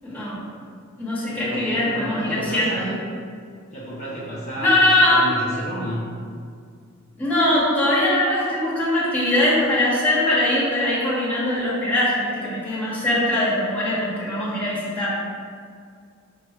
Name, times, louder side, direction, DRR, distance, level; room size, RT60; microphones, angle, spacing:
voice 1, 0.0-0.4 1.0-2.9 4.6-5.3 7.2-15.1, left 1 dB, 10° left, -9 dB, 1.3 m, -21 dB
voice 2, 1.3-3.0 3.7-6.1, equal, 35° left, -9 dB, 0.8 m, -31 dB
5.3 x 2.3 x 4.3 m, 2.2 s
head